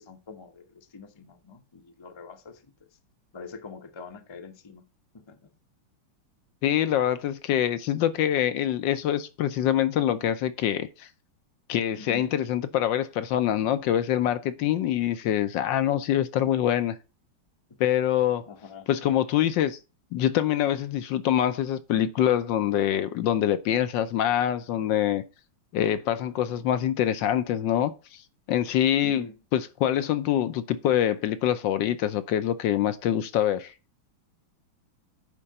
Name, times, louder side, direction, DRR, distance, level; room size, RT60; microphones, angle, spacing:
voice 1, 0.0-2.7 3.3-4.8 5.1-5.5 12.0-12.2 18.5-18.9 29.0-29.4, left 4 dB, 25° left, 0.5 m, -44 dB
voice 2, 6.6-11.1 11.7-17.0 17.8-18.4 18.9-19.8 20.1-25.2 25.7-27.9 28.5-29.2 29.5-33.7, left 11 dB, 75° left, 1.3 m, -25 dB
9.9 x 3.8 x 5.5 m
omnidirectional pair, 2.1 m